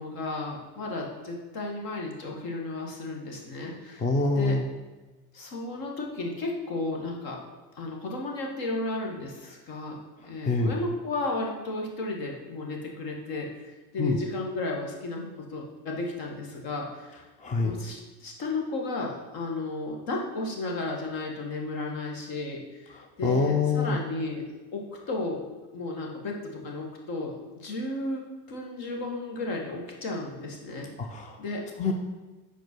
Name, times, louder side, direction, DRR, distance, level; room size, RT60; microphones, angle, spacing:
voice 1, 0.0-4.1 4.3-4.6 5.3-7.4 7.8-10.0 10.2-17.2 17.6-22.6 23.2-24.4 24.7-25.4 25.7-27.3 27.6-28.2 28.5-30.9 31.4-31.6, left 2 dB, 60° left, 0 dB, 1.7 m, -33 dB
voice 2, 4.0-4.7 10.4-10.7 14.0-14.2 17.4-17.7 23.2-24.0 31.0-31.4 31.8-31.9, left 3 dB, 20° left, 4 dB, 0.5 m, -25 dB
5.1 x 4.5 x 6.1 m, 1.2 s
cardioid pair, 125°, 40 cm